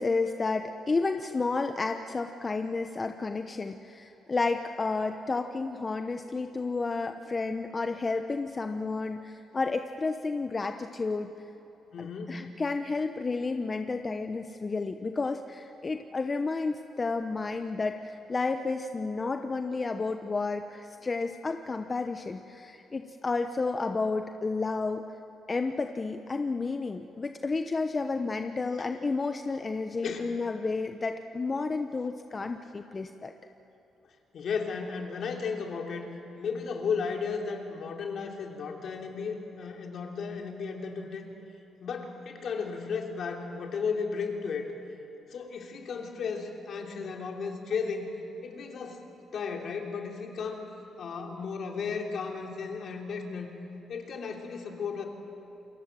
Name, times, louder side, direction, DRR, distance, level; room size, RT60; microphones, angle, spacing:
voice 1, 0.0-11.3 12.0-25.0 25.5-33.3, left 3 dB, 30° left, 7 dB, 0.9 m, -31 dB
voice 2, 11.9-12.4 30.0-30.2 34.3-36.1 36.3-41.3 41.8-44.7 45.3-48.1 48.4-49.0 49.3-50.7 51.0-53.5 53.9-55.1, left 5 dB, 60° left, 2 dB, 3.3 m, -34 dB
28.0 x 22.5 x 7.7 m, 3.0 s
cardioid pair, 90°, 0 cm